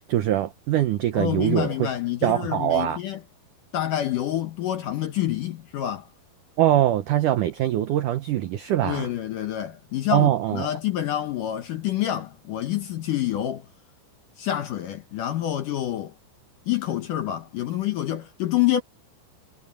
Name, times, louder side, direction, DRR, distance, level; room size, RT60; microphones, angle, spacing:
voice 1, 0.1-1.9 2.2-3.0 6.6-9.1 10.1-10.7, right 13 dB, 85° right, 1.8 m, -22 dB
voice 2, 1.1-3.2 3.7-6.1 8.8-13.7 14.4-16.1 16.7-18.8, left 12 dB, 70° left, 2.1 m, -27 dB
omnidirectional pair, 5.0 m